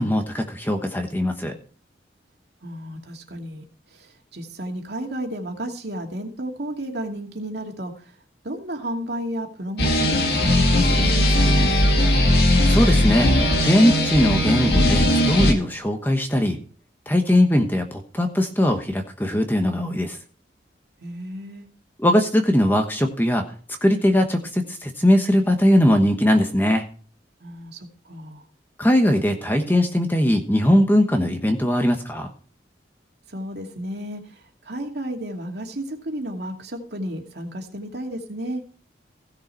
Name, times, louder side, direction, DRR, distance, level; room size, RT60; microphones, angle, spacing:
voice 1, 0.0-1.5 12.6-16.6 17.1-20.2 22.0-23.4 23.8-26.8 28.8-32.3, left 1 dB, 10° left, 5 dB, 1.1 m, -20 dB
voice 2, 2.6-8.1 8.4-11.7 21.0-21.7 27.4-28.4 33.3-38.6, right 1 dB, 65° right, 2 dB, 2.4 m, -33 dB
sound 1, 9.8-15.5, left 1 dB, 60° left, 2.2 m, -18 dB
16.0 x 6.7 x 4.5 m, 0.42 s
head